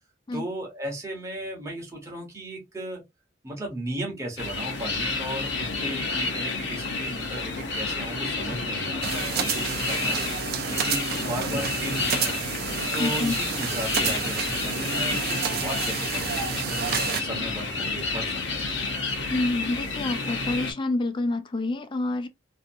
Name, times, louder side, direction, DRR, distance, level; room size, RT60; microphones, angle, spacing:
voice 1, 0.3-3.0 3.4-10.2 10.7-12.4 12.9-18.6, right 1 dB, 15° right, 0.9 m, -35 dB
sound 1, 4.4-20.7, left 3 dB, 65° left, 0.7 m, -30 dB
sound 2, 9.0-17.2, right 7 dB, 50° right, 0.5 m, -30 dB
voice 2, 13.0-13.4 19.3-22.3, left 2 dB, 25° left, 0.3 m, -28 dB
2.6 x 2.5 x 2.5 m
head